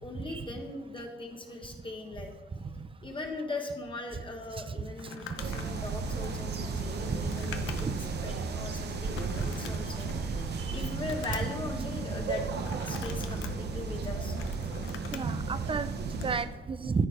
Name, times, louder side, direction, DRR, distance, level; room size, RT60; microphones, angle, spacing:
voice 1, 0.0-2.3 3.0-12.4 12.9-14.4, left 2 dB, 25° left, 2 dB, 1.3 m, -40 dB
Crumpling crinkling, 4.9-8.1 8.5-8.6 9.1-10.3 10.7-11.6 12.6-13.5 14.1-15.3 16.1-16.4, left 8 dB, 85° left, 0.8 m, -44 dB
voice 2, 5.2-5.6 7.1-7.6 7.8-8.0 10.6-10.7 15.1-17.1, right 4 dB, 25° right, 13 dB, 0.6 m, -32 dB
sound 1, 5.4-16.4, right 4 dB, 55° right, 1.0 m, -34 dB
13.0 x 4.5 x 5.1 m, 1.2 s
cardioid pair, 90°, 20 cm